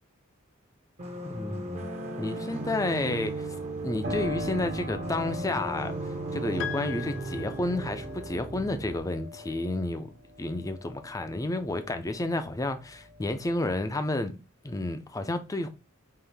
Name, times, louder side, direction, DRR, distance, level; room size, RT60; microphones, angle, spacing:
sound 1, 1.0-9.0, right 2 dB, 30° right, 0.8 m, -36 dB
voice 1, 1.2-1.9 2.2-3.5 3.8-5.9 6.3-10.1 10.4-14.4 14.6-15.7, left 2 dB, 15° left, 0.5 m, -31 dB
Piano, 4.0-12.5 12.9-13.9, equal, 55° right, 1.4 m, -40 dB
Piano 2, 6.6-8.3, left 9 dB, 65° left, 0.5 m, -40 dB
5.6 x 2.6 x 3.4 m
head